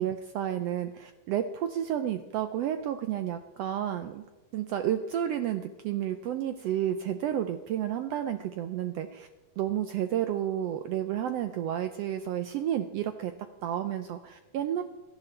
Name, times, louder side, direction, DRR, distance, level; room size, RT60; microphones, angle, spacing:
voice 1, 0.0-4.2 4.5-9.3 9.6-13.3 13.6-14.8, right 10 dB, 85° right, 8 dB, 1.4 m, -31 dB
17.5 x 12.5 x 3.3 m, 1.1 s
omnidirectional pair, 3.4 m